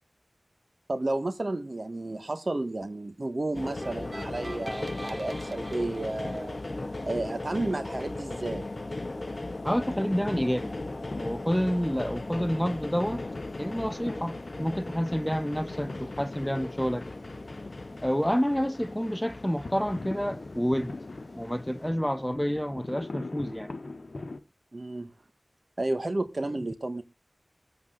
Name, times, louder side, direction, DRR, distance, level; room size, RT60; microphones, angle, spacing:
voice 1, 0.9-6.6 7.0-8.7 24.7-25.1 25.8-27.0, right 2 dB, 55° right, 1.7 m, -32 dB
sound 1, 3.5-21.9, left 2 dB, 55° left, 0.8 m, -38 dB
sound 2, 3.8-7.0, right 1 dB, 30° right, 1.4 m, -44 dB
sound 3, 9.5-24.4, left 2 dB, 75° left, 1.2 m, -43 dB
voice 2, 9.6-10.7 11.2-13.2 13.6-17.1 18.0-20.9 21.3-23.7, equal, 5° left, 0.7 m, -29 dB
24.0 x 8.1 x 2.5 m
wide cardioid pair, 40°, 0 cm